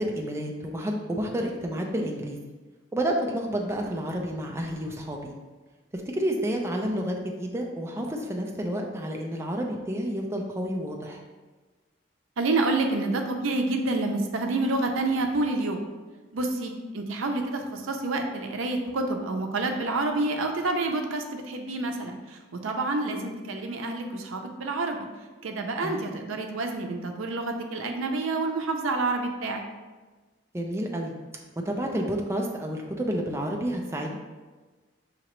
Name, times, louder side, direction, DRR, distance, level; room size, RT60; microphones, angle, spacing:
voice 1, 0.0-2.4 2.9-5.3 5.9-11.2 23.1-23.3 25.8-26.0 30.5-31.1 31.7-34.2, equal, 15° right, 0 dB, 0.3 m, -30 dB
voice 2, 12.4-15.8 16.3-25.1 25.4-29.6, right 2 dB, 85° right, 4 dB, 0.5 m, -28 dB
6.0 x 2.8 x 3.0 m, 1.3 s
head